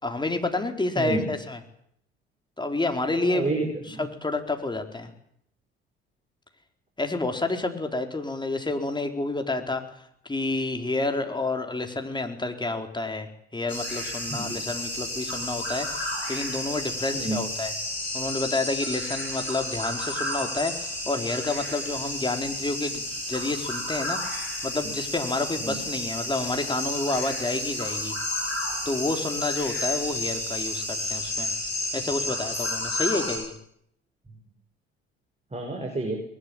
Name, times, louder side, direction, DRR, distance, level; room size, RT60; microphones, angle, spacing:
voice 1, 0.0-1.6 2.6-3.5 3.9-5.1 7.0-9.8 10.2-17.7 18.1-28.2 28.8-31.5 31.9-33.5, left 2 dB, 15° left, 5 dB, 4.3 m, -29 dB
voice 2, 1.0-1.3 3.2-4.0 14.3-14.6 17.1-17.5 24.8-24.9 25.6-25.8 35.5-36.2, right 2 dB, 20° right, 2 dB, 6.3 m, -30 dB
sound 1, 13.7-33.4, left 1 dB, 85° left, 7.9 m, -31 dB
21.5 x 21.0 x 9.0 m, 0.71 s
figure-of-eight pair, 55°, 31 cm